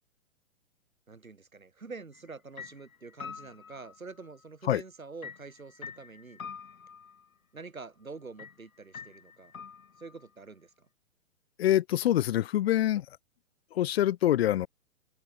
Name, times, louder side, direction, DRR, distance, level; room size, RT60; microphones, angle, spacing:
voice 1, 1.1-6.4 7.5-9.5 10.0-10.7, right 4 dB, 85° right, 2.9 m, -46 dB
sound 1, 2.1-2.3 2.6-4.4 5.2-7.3 8.4-8.6 8.9-10.3, left 6 dB, 80° left, 1.3 m, -46 dB
voice 2, 11.6-13.0 13.7-14.7, left 13 dB, 50° left, 1.5 m, -25 dB
figure-of-eight pair, 120°, 41 cm